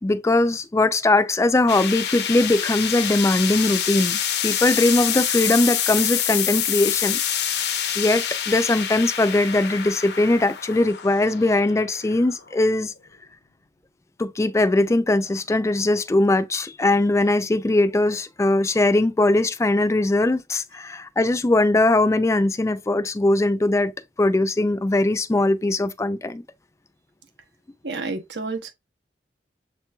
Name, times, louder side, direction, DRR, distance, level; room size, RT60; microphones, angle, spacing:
voice 1, 0.0-7.2 7.6-7.7 8.0-12.9 14.2-23.9 24.2-26.4, left 2 dB, 15° left, 0.3 m, -20 dB
sound 1, 1.7-12.8, left 9 dB, 65° left, 0.6 m, -26 dB
voice 2, 27.8-28.7, right 3 dB, 70° right, 0.9 m, -30 dB
7.3 x 3.0 x 2.2 m
head